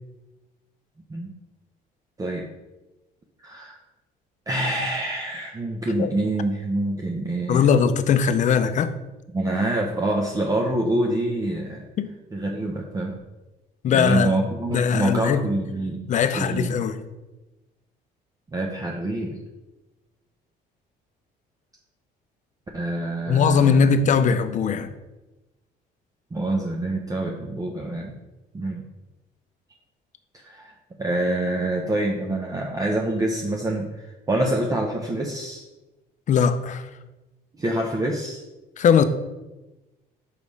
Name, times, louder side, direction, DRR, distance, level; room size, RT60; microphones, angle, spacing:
voice 1, 3.4-3.8 4.5-7.7 9.3-11.8 12.3-13.2 13.9-16.0 16.4-16.7 18.5-19.4 22.7-24.0 26.3-28.2 28.5-28.8 30.3-30.7 31.0-35.6 37.6-38.4, right 1 dB, 20° right, 0.8 m, -26 dB
voice 2, 7.5-8.9 12.0-12.1 13.8-14.3 14.7-15.4 16.1-17.0 23.3-24.9 36.3-36.8 38.8-39.0, left 6 dB, 45° left, 0.6 m, -20 dB
5.2 x 4.9 x 5.3 m
cardioid pair, 110°, 17 cm